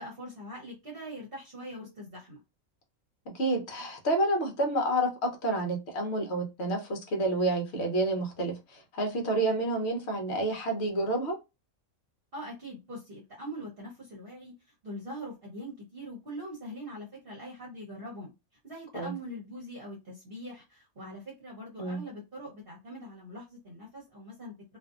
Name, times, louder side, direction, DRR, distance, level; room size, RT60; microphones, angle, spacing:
voice 1, 0.0-2.4 12.3-18.3 18.6-24.8, equal, 45° right, 1.0 m, -42 dB
voice 2, 3.3-11.4 18.9-19.1 21.8-22.0, right 1 dB, 55° left, 0.9 m, -29 dB
2.6 x 2.5 x 2.3 m
omnidirectional pair, 1.5 m